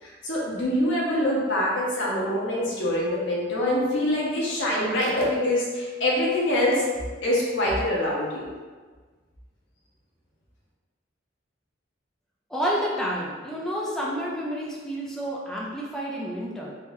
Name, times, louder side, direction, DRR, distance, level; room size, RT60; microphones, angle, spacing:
voice 1, 0.0-6.9 7.2-8.5, left 1 dB, 75° left, -5 dB, 1.0 m, -25 dB
voice 2, 12.5-16.8, equal, 5° left, -4 dB, 0.4 m, -29 dB
3.7 x 2.8 x 2.6 m, 1.4 s
head